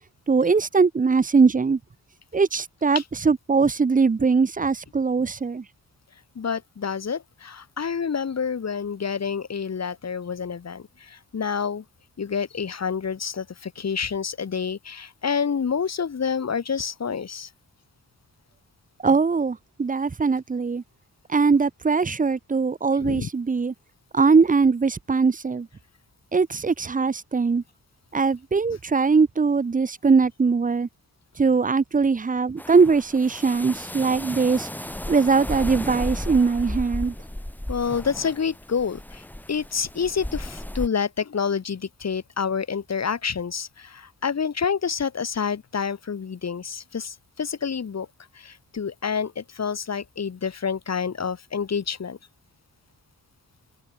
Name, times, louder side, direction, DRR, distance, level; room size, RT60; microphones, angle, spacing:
voice 1, 0.3-1.8 2.3-5.6 19.0-20.8 21.3-23.7 24.1-25.7 26.3-27.6 28.1-30.9 31.4-34.7 35.1-37.1, right 4 dB, 25° right, 0.6 m, -21 dB
voice 2, 6.3-11.8 12.2-17.5 23.0-23.3 37.7-48.1 48.3-52.2, left 6 dB, 45° left, 1.5 m, -28 dB
sound 1, 32.6-40.9, left 1 dB, 5° left, 1.4 m, -34 dB
wide cardioid pair, 145°, 37 cm